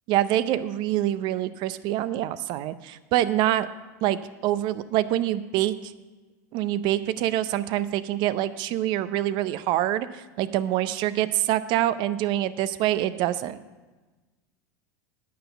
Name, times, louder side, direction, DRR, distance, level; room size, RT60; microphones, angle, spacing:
voice 1, 0.1-3.7 4.0-5.9 6.5-13.6, right 13 dB, 55° right, 15 dB, 0.6 m, -25 dB
9.3 x 6.0 x 8.0 m, 1.2 s
hypercardioid pair, 105°, 10 cm